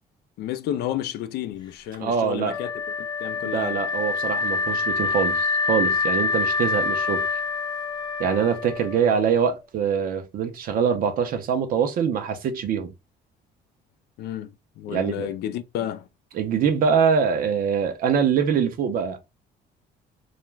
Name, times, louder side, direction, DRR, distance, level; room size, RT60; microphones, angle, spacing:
voice 1, 0.4-2.7 3.0-3.8 14.2-16.1, left 11 dB, 70° left, 0.4 m, -31 dB
voice 2, 2.0-2.6 3.4-7.3 8.2-12.9 14.9-15.3 16.3-19.2, right 7 dB, 60° right, 0.6 m, -24 dB
Wind instrument woodwind instrument, 2.5-9.5, left 4 dB, 25° left, 0.7 m, -26 dB
2.4 x 2.2 x 3.2 m
cardioid pair, 110°, 17 cm